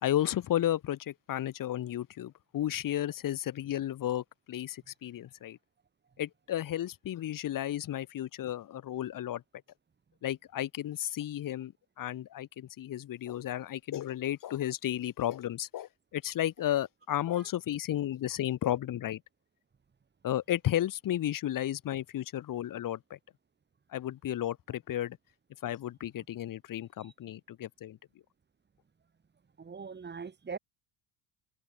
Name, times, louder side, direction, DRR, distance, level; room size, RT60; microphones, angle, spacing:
voice 1, 0.0-5.6 6.2-9.4 10.2-11.7 12.0-19.2 20.2-23.2 23.9-25.2 25.6-28.0, left 12 dB, 45° left, 2.8 m, -33 dB
voice 2, 29.6-30.6, right 5 dB, 25° right, 3.6 m, -41 dB
supercardioid pair, 105°, 43 cm